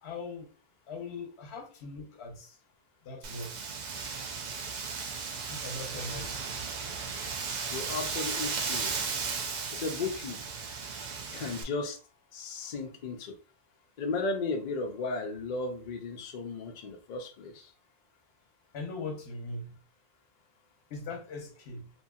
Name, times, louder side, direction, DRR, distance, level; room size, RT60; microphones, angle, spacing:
voice 1, 0.0-0.5 0.9-2.6 3.0-3.7 5.2-6.7 18.7-19.8 20.9-21.9, left 3 dB, 80° left, 1.0 m, -41 dB
Wind, 3.2-11.6, right 5 dB, 55° right, 0.5 m, -35 dB
voice 2, 7.7-8.9 9.7-10.4 11.3-12.0 12.3-13.4 14.0-17.7, left 3 dB, 55° left, 0.6 m, -35 dB
2.8 x 2.6 x 2.3 m
omnidirectional pair, 1.1 m